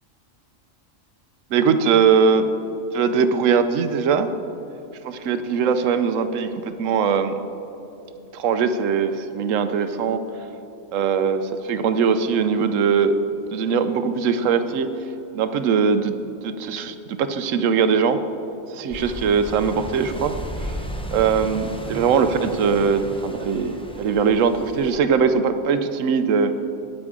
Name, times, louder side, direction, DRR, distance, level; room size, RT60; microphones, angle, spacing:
voice 1, 1.5-2.5 2.9-4.3 5.0-7.4 8.3-10.2 10.9-13.2 13.5-14.9 15.3-16.1 16.4-18.2 18.7-20.4 20.6-20.8 21.1-26.5, right 6 dB, 75° right, 10 dB, 1.0 m, -21 dB
sound 1, 18.9-25.0, equal, 5° left, 0.5 m, -34 dB
13.0 x 9.8 x 3.7 m, 2.9 s
omnidirectional pair, 1.4 m